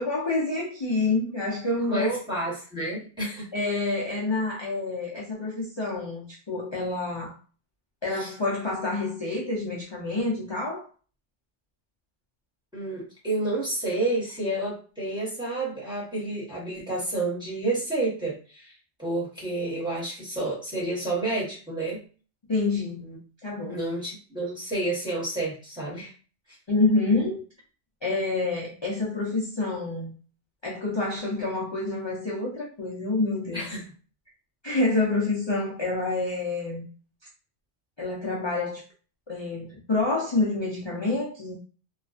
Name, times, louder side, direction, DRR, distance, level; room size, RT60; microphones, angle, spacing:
voice 1, 0.0-2.2 3.5-7.3 8.0-10.8 22.5-23.1 23.4-23.8 26.7-27.4 28.0-30.1 30.6-33.6 34.6-36.9 38.0-38.8 39.3-41.5, left 3 dB, 40° left, -4 dB, 0.4 m, -27 dB
voice 2, 1.9-3.5 8.1-8.3 12.7-18.7 19.0-22.0 23.0-23.2 23.7-26.1 33.5-33.8, right 2 dB, 5° right, -6 dB, 1.0 m, -30 dB
2.3 x 2.2 x 2.4 m, 0.38 s
omnidirectional pair, 1.2 m